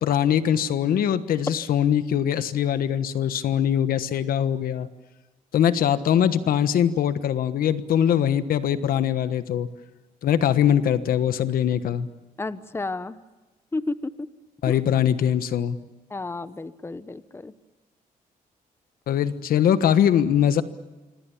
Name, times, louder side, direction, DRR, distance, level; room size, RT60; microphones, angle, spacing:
voice 1, 0.0-4.9 5.5-9.7 10.2-12.1 14.6-15.8 19.1-20.6, left 9 dB, 80° left, 12 dB, 1.3 m, -22 dB
voice 2, 12.4-13.2 13.7-14.3 14.7-14.8 16.1-17.5, left 3 dB, 15° left, 14 dB, 0.9 m, -32 dB
26.5 x 25.0 x 7.2 m, 1.2 s
cardioid pair, 105°, 15 cm